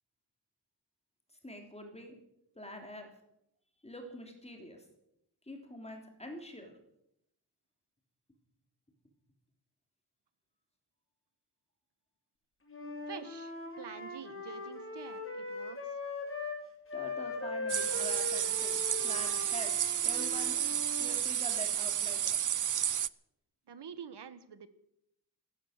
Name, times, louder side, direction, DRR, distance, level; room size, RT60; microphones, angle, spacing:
voice 1, 1.4-2.2 2.5-3.1 3.8-4.8 5.5-6.8 16.9-20.6 21.0-22.4, left 1 dB, 15° left, 3 dB, 3.3 m, -45 dB
Wind instrument woodwind instrument, 12.7-16.6 16.9-21.1, left 3 dB, 30° left, 4.0 m, -40 dB
voice 2, 13.1-16.0 23.7-24.7, right 7 dB, 85° right, 13 dB, 1.4 m, -47 dB
sound 1, 17.7-23.1, right 10 dB, 50° right, 0.5 m, -31 dB
16.5 x 13.0 x 6.6 m, 0.79 s
wide cardioid pair, 140°, 40 cm